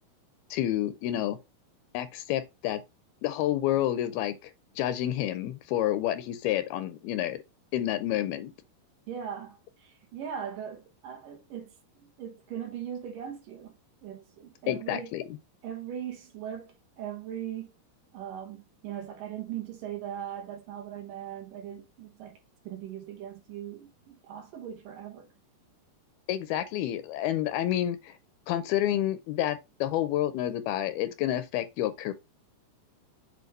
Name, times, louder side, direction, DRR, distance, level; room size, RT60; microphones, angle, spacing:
voice 1, 0.5-1.4 1.9-2.8 3.2-4.5 4.8-7.4 7.7-8.5 14.7-15.4 26.3-28.2 28.5-32.1, left 12 dB, 80° left, 2.4 m, -29 dB
voice 2, 9.1-11.8 12.0-13.7 14.0-15.1 15.6-17.7 18.1-22.4 22.6-25.3, right 9 dB, 65° right, 2.4 m, -39 dB
7.8 x 2.6 x 5.3 m
omnidirectional pair, 4.6 m